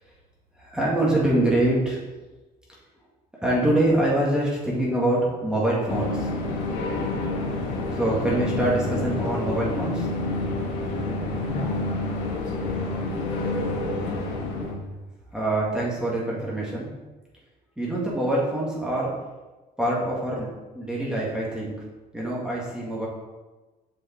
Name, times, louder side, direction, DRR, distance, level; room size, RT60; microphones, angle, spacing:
voice 1, 0.6-2.0 3.4-6.3 7.9-10.1 15.3-16.9 17.8-19.2 19.8-20.5 20.7-21.8 22.1-23.1, right 1 dB, 5° right, -6 dB, 2.4 m, -24 dB
sound 1, 5.9-14.7, left 2 dB, 90° left, 1.8 m, -28 dB
voice 2, 11.3-14.0, left 1 dB, 55° left, -4 dB, 2.7 m, -38 dB
7.5 x 5.5 x 4.6 m, 1.2 s
cardioid pair, 110°, 17 cm